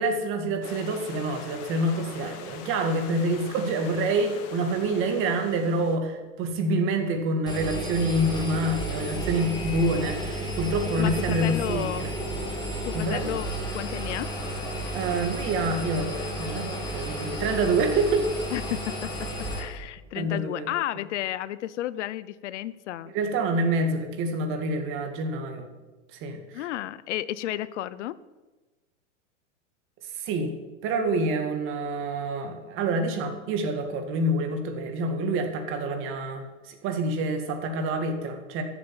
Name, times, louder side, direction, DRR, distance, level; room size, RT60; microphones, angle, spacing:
voice 1, 0.0-12.1 12.9-13.4 14.9-18.2 20.1-20.7 23.1-25.7 26.1-26.7 30.2-30.5 30.8-38.6, right 2 dB, 35° right, 6 dB, 2.2 m, -27 dB
Stream / Liquid, 0.6-6.0, left 7 dB, 40° left, 1.6 m, -43 dB
Engine, 7.5-19.6, right 1 dB, 10° left, 2.6 m, -32 dB
voice 2, 11.0-12.1 12.8-14.3 18.5-19.3 19.6-23.1 26.5-28.2, left 13 dB, 70° left, 17 dB, 0.8 m, -32 dB
14.0 x 7.5 x 8.9 m, 1.2 s
supercardioid pair, 150°, 37 cm